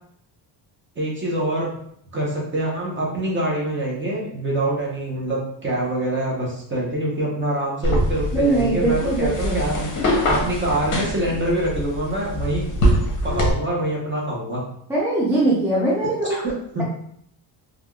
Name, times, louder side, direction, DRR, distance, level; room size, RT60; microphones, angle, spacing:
voice 1, 1.0-1.8 2.1-12.7 13.2-14.6 16.3-16.8, right 1 dB, 25° right, -3 dB, 0.8 m, -25 dB
sound 1, 7.8-13.5, equal, 40° left, 0.7 m, -23 dB
voice 2, 8.3-9.6 14.9-16.4, right 2 dB, 5° right, -7 dB, 0.3 m, -21 dB
3.3 x 2.4 x 2.2 m, 0.68 s
cardioid pair, 150°, 48 cm